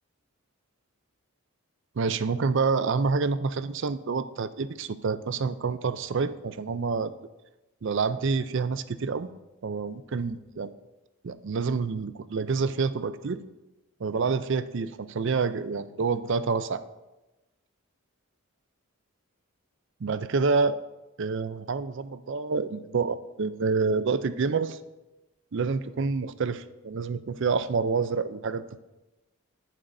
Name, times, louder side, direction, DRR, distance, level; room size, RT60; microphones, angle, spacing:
voice 1, 2.0-7.1 7.8-9.3 9.6-10.7 11.2-13.4 14.0-16.8 20.0-20.8 21.2-24.8 25.5-28.6, right 4 dB, 55° right, 13 dB, 0.5 m, -28 dB
20.5 x 7.5 x 2.6 m, 1.0 s
head